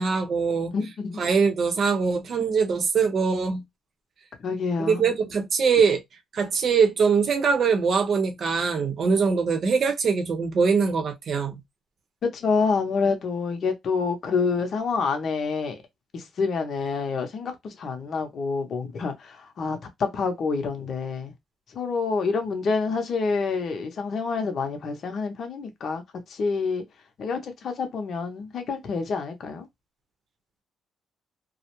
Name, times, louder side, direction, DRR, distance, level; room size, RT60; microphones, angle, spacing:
voice 1, 0.0-0.7 1.2-3.6 4.8-6.0 6.3-11.6, right 5 dB, 55° right, 0.7 m, -22 dB
voice 2, 0.7-1.2 4.4-5.1 12.2-15.8 16.1-21.3 21.7-26.8 27.2-29.7, left 4 dB, 55° left, 0.7 m, -27 dB
2.4 x 2.0 x 2.9 m
cardioid pair, 90°, 0 cm